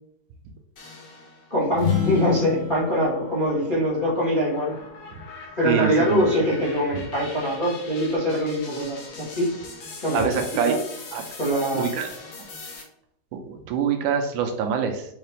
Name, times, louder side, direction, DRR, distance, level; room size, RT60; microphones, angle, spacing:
sound 1, 0.8-1.6 2.1-12.8, left 3 dB, 80° left, 1.0 m, -41 dB
voice 1, 1.5-4.7 5.6-9.5 10.0-10.3 10.6-10.8 11.4-11.9, equal, 35° left, -7 dB, 0.8 m, -23 dB
sound 2, 1.7-5.4, left 7 dB, 60° left, 1.9 m, -30 dB
voice 2, 5.6-6.3 10.1-10.8 11.1-11.2 11.7-12.1 13.3-15.0, right 7 dB, 80° right, 5 dB, 2.0 m, -25 dB
5.5 x 2.9 x 3.2 m, 0.78 s
omnidirectional pair, 3.7 m